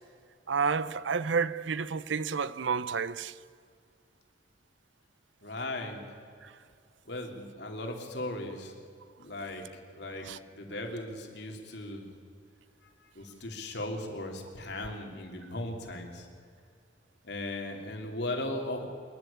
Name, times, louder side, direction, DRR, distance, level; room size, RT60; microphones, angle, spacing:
voice 1, 0.5-3.3 10.3-10.4, right 5 dB, 80° right, 0.6 m, -30 dB
voice 2, 5.4-6.0 7.0-8.7 9.2-9.6 9.9-10.3 10.5-12.1 13.1-16.3 17.2-18.9, left 1 dB, 65° left, 3.2 m, -37 dB
26.5 x 11.5 x 8.5 m
head